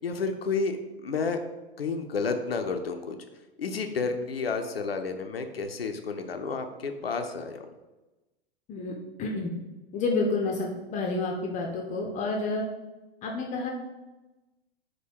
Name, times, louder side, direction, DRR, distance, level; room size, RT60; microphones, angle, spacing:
voice 1, 0.0-0.8 1.0-1.4 1.8-3.2 3.6-7.6, left 4 dB, 85° left, 6 dB, 0.5 m, -30 dB
voice 2, 8.7-9.5 9.9-12.6 13.2-13.7, left 3 dB, 25° left, 0 dB, 0.5 m, -29 dB
4.9 x 2.2 x 4.5 m, 1.1 s
figure-of-eight pair, 95°, 29 cm